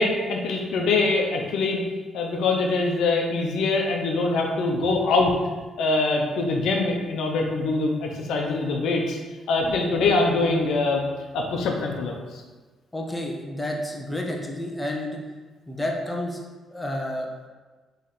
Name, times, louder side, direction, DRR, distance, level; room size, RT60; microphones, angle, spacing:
voice 1, 0.0-1.8 2.1-5.3 5.8-9.2 9.5-11.0 11.3-12.1, left 3 dB, 80° left, 1 dB, 0.6 m, -23 dB
voice 2, 12.9-15.2 15.7-16.4 16.7-17.5, left 1 dB, 10° left, 0 dB, 0.8 m, -30 dB
4.0 x 3.1 x 4.0 m, 1.3 s
cardioid pair, 90°, 0 cm